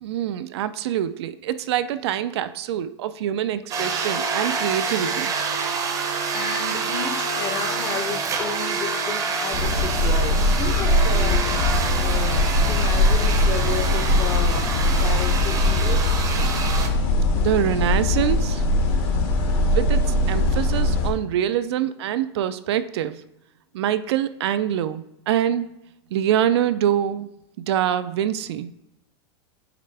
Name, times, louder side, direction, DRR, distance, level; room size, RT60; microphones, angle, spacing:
voice 1, 0.0-5.3 17.3-18.7 19.7-23.2 23.7-25.7 26.1-27.3 27.6-28.7, right 10 dB, 70° right, 12 dB, 0.4 m, -25 dB
sound 1, 3.7-16.9, right 5 dB, 25° right, 0.7 m, -27 dB
voice 2, 6.0-11.5 11.9-16.1, left 6 dB, 30° left, 6 dB, 0.8 m, -33 dB
sound 2, 9.5-21.1, left 1 dB, 50° left, 1.2 m, -21 dB
8.6 x 3.3 x 3.3 m, 0.85 s
supercardioid pair, 145°, 14 cm